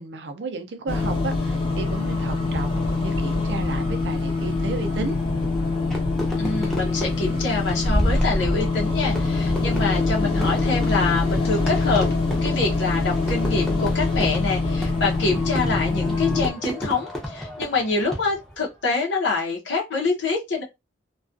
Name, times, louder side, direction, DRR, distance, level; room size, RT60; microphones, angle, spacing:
voice 1, 0.0-5.2, right 3 dB, 70° right, 0.5 m, -33 dB
sound 1, 0.9-16.5, left 3 dB, 30° left, 0.8 m, -24 dB
Fireworks, 5.9-18.6, equal, ahead, 0.6 m, -35 dB
voice 2, 6.4-12.1 12.4-20.6, left 3 dB, 85° left, 0.7 m, -26 dB
2.3 x 2.3 x 2.5 m
head